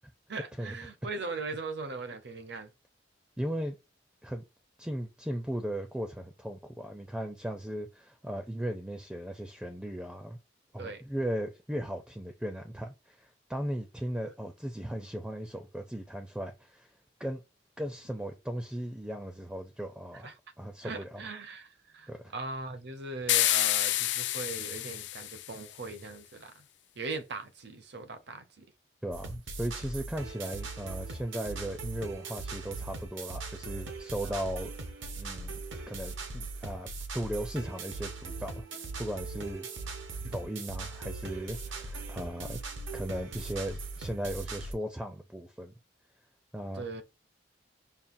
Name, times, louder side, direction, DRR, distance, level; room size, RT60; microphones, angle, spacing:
voice 1, 0.3-2.7 10.8-11.0 20.2-20.3 20.8-26.7 27.0-28.7 34.2-34.4 40.2-40.4 46.7-47.0, right 3 dB, 65° right, 0.8 m, -40 dB
voice 2, 3.4-3.8 4.2-4.4 4.8-10.4 10.7-16.9 17.2-17.4 17.8-20.3 20.6-21.2 22.1-22.3 29.0-34.7 35.2-35.5 35.9-38.7 39.0-39.7 40.3-42.6 42.9-45.7 46.5-46.9, equal, 5° right, 0.4 m, -37 dB
sound 1, 23.3-25.7, left 14 dB, 65° left, 0.4 m, -28 dB
sound 2, 29.1-44.7, right 3 dB, 85° right, 1.0 m, -40 dB
5.5 x 2.3 x 2.6 m
head